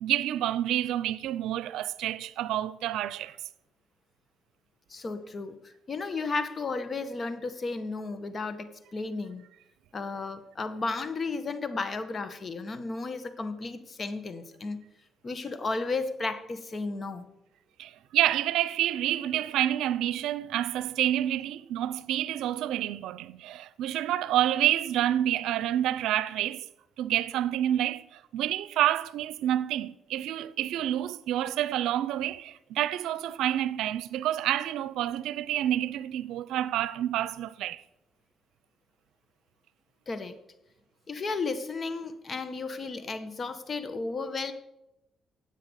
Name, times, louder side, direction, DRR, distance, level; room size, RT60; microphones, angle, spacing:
voice 1, 0.0-3.4 17.8-26.6 27.0-37.8, right 12 dB, 90° right, 0.7 m, -28 dB
voice 2, 4.9-9.5 9.9-14.8 15.2-17.3 40.1-40.4 41.1-44.5, left 3 dB, 40° left, 1.8 m, -34 dB
16.0 x 9.1 x 6.6 m
cardioid pair, 90°, 0 cm